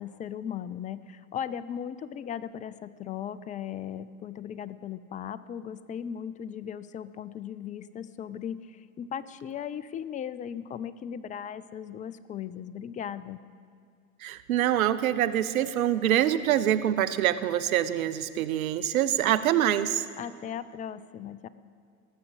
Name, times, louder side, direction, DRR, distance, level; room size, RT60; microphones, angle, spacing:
voice 1, 0.0-13.4 20.2-21.5, left 9 dB, 20° left, 16 dB, 0.4 m, -37 dB
voice 2, 14.2-20.1, right 11 dB, 75° right, 13 dB, 0.8 m, -25 dB
18.5 x 7.2 x 8.1 m, 2.3 s
hypercardioid pair, 85°, 42 cm